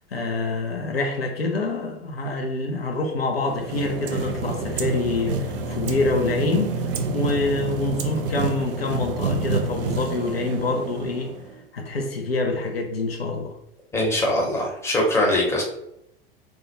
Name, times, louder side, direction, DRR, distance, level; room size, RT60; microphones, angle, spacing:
voice 1, 0.1-11.3 11.7-13.5, left 2 dB, 90° left, 0.5 m, -26 dB
sound 1, 3.3-11.6, right 3 dB, 70° right, 0.4 m, -28 dB
voice 2, 13.9-15.6, left 1 dB, 10° left, 0.7 m, -22 dB
2.2 x 2.1 x 2.8 m
figure-of-eight pair, 80°, 29 cm